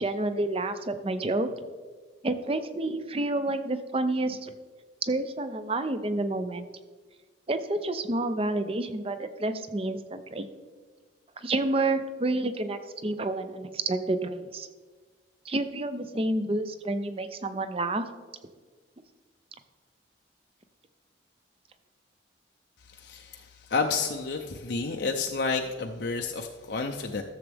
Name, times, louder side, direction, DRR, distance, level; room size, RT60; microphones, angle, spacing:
voice 1, 0.0-1.5 2.2-4.5 5.0-6.7 7.5-10.5 11.4-14.7 15.4-18.1, right 2 dB, 30° right, 10 dB, 0.5 m, -29 dB
voice 2, 22.9-27.2, left 4 dB, 60° left, 3 dB, 0.6 m, -30 dB
13.5 x 7.1 x 3.4 m, 1.5 s
head